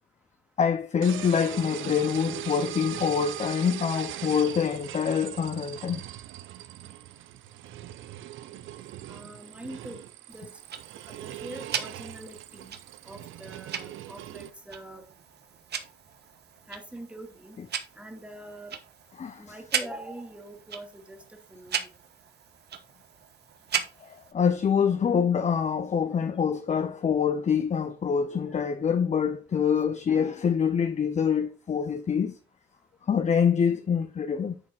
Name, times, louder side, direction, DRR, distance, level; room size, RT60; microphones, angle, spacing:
voice 1, 0.6-6.0 17.6-17.7 19.2-19.4 24.0-32.4 33.1-34.6, left 7 dB, 35° left, 0.7 m, -25 dB
sound 1, 1.0-14.5, right 13 dB, 80° right, 0.6 m, -40 dB
voice 2, 9.1-10.0 10.3-10.5 11.1-12.8 13.0-15.0 16.7-17.6 18.0-18.8 19.4-21.9, right 1 dB, 5° right, 2.3 m, -43 dB
Tick-tock, 10.3-24.3, right 8 dB, 55° right, 1.2 m, -38 dB
9.9 x 4.3 x 4.3 m
cardioid pair, 90°, 20 cm